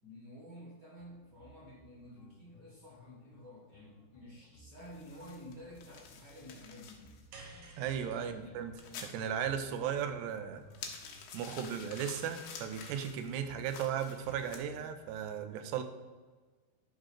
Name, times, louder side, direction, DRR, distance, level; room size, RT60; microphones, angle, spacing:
voice 1, 0.0-7.1 8.2-8.6, left 1 dB, 30° right, -4 dB, 2.4 m, -51 dB
sound 1, 1.0-15.2, equal, 65° left, 2.2 m, -61 dB
sound 2, 4.8-14.6, left 6 dB, 85° left, 3.3 m, -51 dB
sound 3, 7.3-11.7, right 2 dB, 70° right, 3.0 m, -56 dB
voice 2, 7.8-8.7 9.0-10.6 11.3-15.8, right 8 dB, 90° right, 8 dB, 2.9 m, -36 dB
11.5 x 3.9 x 6.5 m, 1.4 s
omnidirectional pair, 4.7 m